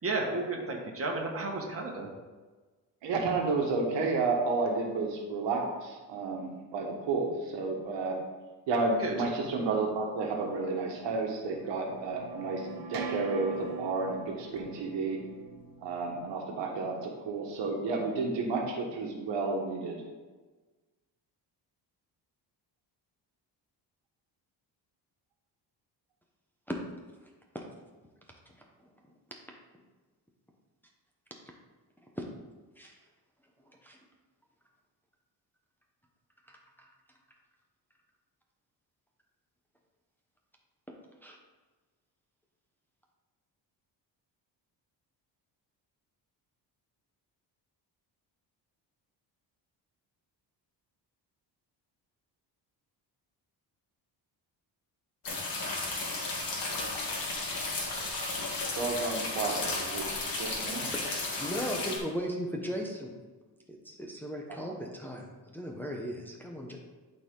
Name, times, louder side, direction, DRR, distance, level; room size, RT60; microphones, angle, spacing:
voice 1, 0.0-2.1 9.0-9.3, right 2 dB, 35° right, 0 dB, 1.6 m, -33 dB
voice 2, 3.0-8.2 8.7-15.2 15.8-20.0 58.7-60.1 60.3-60.9 64.5-64.7, right 3 dB, 85° right, 1 dB, 1.5 m, -31 dB
sound 1, 10.6-16.4, right 3 dB, 55° right, 0.9 m, -43 dB
voice 3, 27.2-27.6 28.5-28.6 28.8-28.9 32.2-32.3 32.8-32.9 33.7-34.0 36.5-36.9 41.2-41.4 60.9-61.0 61.4-63.1 63.7-66.8, equal, 5° left, -1 dB, 0.9 m, -37 dB
sound 2, 55.2-62.0, left 3 dB, 55° left, 2.0 m, -34 dB
11.5 x 4.5 x 3.8 m, 1.3 s
cardioid pair, 130°, 42 cm